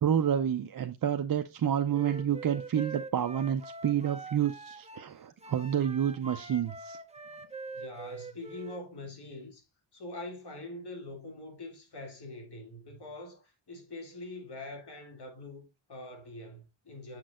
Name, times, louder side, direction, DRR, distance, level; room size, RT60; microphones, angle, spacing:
voice 1, 0.0-7.0, right 9 dB, 50° right, 0.5 m, -29 dB
Wind instrument woodwind instrument, 1.9-5.1 5.4-8.8, right 3 dB, 15° right, 0.7 m, -44 dB
voice 2, 7.7-9.6 9.9-17.2, left 2 dB, 55° left, 2.5 m, -44 dB
7.4 x 6.1 x 2.4 m
wide cardioid pair, 120°, 46 cm